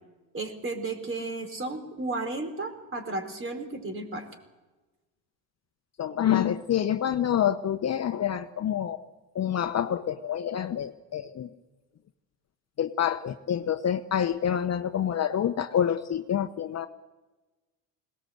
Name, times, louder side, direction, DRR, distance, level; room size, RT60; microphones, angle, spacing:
voice 1, 0.3-4.3, right 2 dB, 30° right, 7 dB, 4.3 m, -33 dB
voice 2, 6.0-9.0 9.3-11.5 12.8-16.9, left 9 dB, 40° left, 9 dB, 0.9 m, -27 dB
21.0 x 18.5 x 7.9 m, 1.2 s
supercardioid pair, 85°, 42 cm